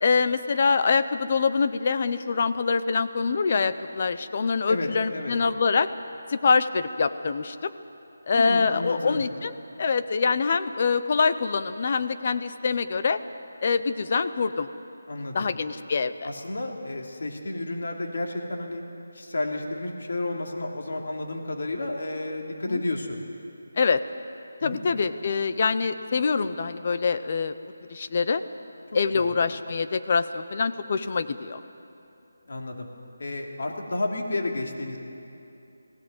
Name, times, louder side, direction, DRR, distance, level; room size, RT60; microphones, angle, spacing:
voice 1, 0.0-5.9 6.3-7.7 8.3-13.2 13.6-14.7 15.3-16.1 22.7-22.8 23.8-24.0 24.6-27.5 27.9-28.4 28.9-31.6, left 5 dB, 35° left, 12 dB, 0.7 m, -25 dB
voice 2, 4.7-5.4 8.3-9.2 15.1-15.5 16.2-18.8 19.1-23.2 24.6-24.8 29.1-29.3 32.5-32.9 33.2-35.0, left 2 dB, 60° left, 1 dB, 2.9 m, -31 dB
20.5 x 17.0 x 7.9 m, 2.8 s
figure-of-eight pair, 175°, 0 cm